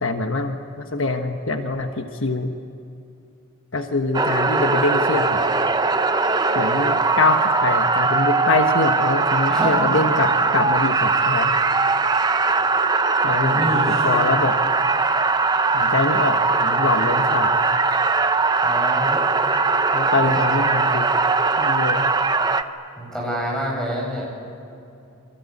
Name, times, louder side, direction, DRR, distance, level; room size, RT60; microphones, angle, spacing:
voice 1, 0.0-2.5 3.7-5.7 6.5-11.5 13.2-14.6 15.7-17.6 19.9-21.1 21.6-22.1, left 3 dB, 65° left, 5 dB, 1.3 m, -24 dB
sound 1, 4.1-22.6, right 4 dB, 20° right, 0.8 m, -20 dB
voice 2, 9.5-9.8 13.3-14.1 18.6-19.2 20.2-20.3 23.0-24.3, equal, 5° left, -2 dB, 7.7 m, -27 dB
29.0 x 23.5 x 8.6 m, 2.6 s
head